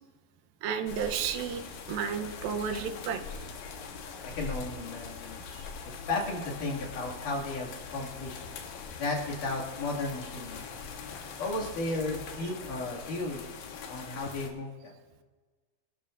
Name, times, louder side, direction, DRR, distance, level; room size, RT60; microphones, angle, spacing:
voice 1, 0.6-3.2 5.5-5.7 12.4-12.5, right 7 dB, 90° right, 8 dB, 2.6 m, -33 dB
sound 1, 0.9-14.5, left 5 dB, 85° left, 2.9 m, -42 dB
voice 2, 4.3-5.4 6.1-8.4 9.0-10.6 11.4-13.4 13.9-14.9, left 2 dB, 65° left, -3 dB, 3.6 m, -34 dB
25.0 x 12.5 x 2.5 m, 1.4 s
omnidirectional pair, 4.0 m